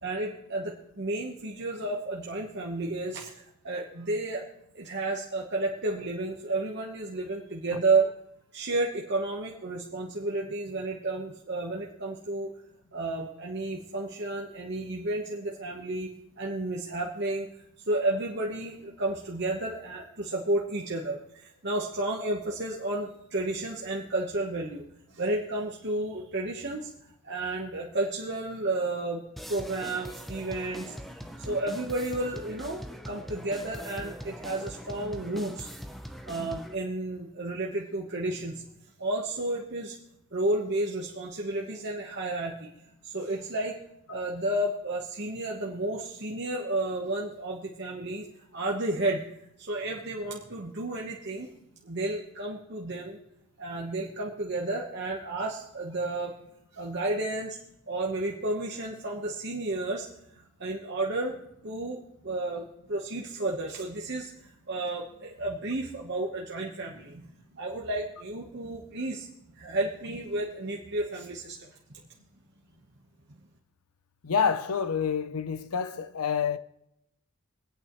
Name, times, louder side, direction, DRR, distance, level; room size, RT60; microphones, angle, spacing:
voice 1, 0.0-4.4 4.7-8.1 8.5-12.5 12.9-17.5 17.9-26.9 27.2-30.9 31.4-35.7 36.2-38.6 39.0-39.9 40.3-42.7 43.0-43.7 44.1-48.3 48.5-49.2 49.7-51.5 51.8-53.2 53.6-56.3 56.7-57.6 57.9-60.1 60.3-61.3 61.6-62.6 62.9-64.3 64.7-69.3 69.6-71.6 73.3-73.4, right 2 dB, 50° right, 1.1 m, -32 dB
sound 1, 29.4-36.7, equal, ahead, 0.7 m, -42 dB
voice 2, 74.2-76.6, left 6 dB, 80° left, 0.7 m, -27 dB
24.5 x 8.9 x 3.1 m
head